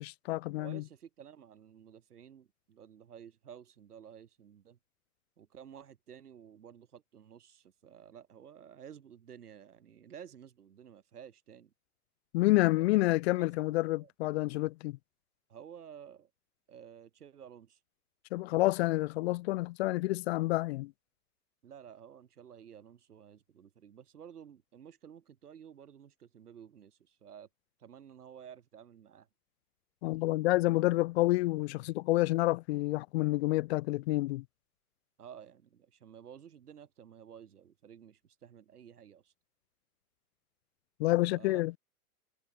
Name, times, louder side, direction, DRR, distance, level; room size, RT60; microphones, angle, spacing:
voice 1, 0.0-0.8 12.3-15.0 18.3-20.9 30.0-34.4 41.0-41.8, left 19 dB, 45° left, 0.7 m, -29 dB
voice 2, 0.5-4.8 5.4-11.7 12.8-12.9 13.4-13.5 14.0-14.1 15.5-16.3 16.7-17.8 21.6-27.5 27.8-29.3 35.2-39.3 41.3-41.7, right 8 dB, 75° right, 5.7 m, -52 dB
hypercardioid pair, 110°, 46 cm